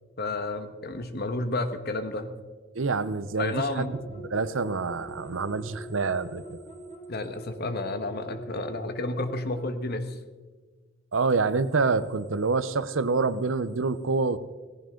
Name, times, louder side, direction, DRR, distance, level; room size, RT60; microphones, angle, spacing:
voice 1, 0.2-2.3 3.4-3.9 7.1-10.2, left 2 dB, 55° left, 9 dB, 1.4 m, -31 dB
voice 2, 2.7-3.9 4.3-6.6 11.1-14.4, right 4 dB, 75° right, 15 dB, 0.8 m, -27 dB
sound 1, 3.9-9.8, right 1 dB, 35° left, 3.3 m, -44 dB
18.0 x 15.5 x 3.8 m, 1.4 s
head